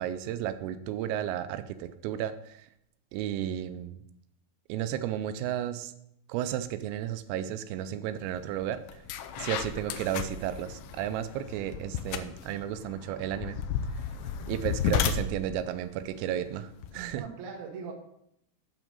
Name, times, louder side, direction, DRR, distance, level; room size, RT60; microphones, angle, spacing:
voice 1, 0.0-2.7 3.1-4.0 4.7-5.9 6.3-9.0 9.3-13.6 14.5-17.2, right 11 dB, 90° right, 11 dB, 3.3 m, -33 dB
sound 1, 8.4-8.5 8.9-17.2, left 8 dB, 80° left, 2.7 m, -34 dB
voice 2, 14.2-14.5 17.1-17.9, right 5 dB, 65° right, 0 dB, 2.0 m, -41 dB
8.8 x 6.0 x 5.3 m, 0.76 s
omnidirectional pair, 5.8 m